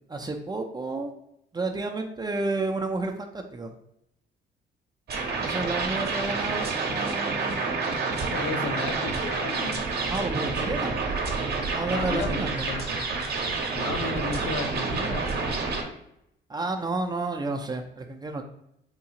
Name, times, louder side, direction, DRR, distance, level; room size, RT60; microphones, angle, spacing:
voice 1, 0.1-1.1 1.5-3.7 5.4-7.6 10.1-11.0 11.7-12.7 16.5-18.4, right 3 dB, 20° right, 3 dB, 0.4 m, -31 dB
sound 1, 5.1-15.8, right 4 dB, 55° right, 0.7 m, -28 dB
voice 2, 8.3-9.9 10.6-10.8 11.9-12.8 13.7-15.6, left 5 dB, 65° left, 5 dB, 0.5 m, -34 dB
3.7 x 2.4 x 2.8 m, 0.78 s
cardioid pair, 90°, 20 cm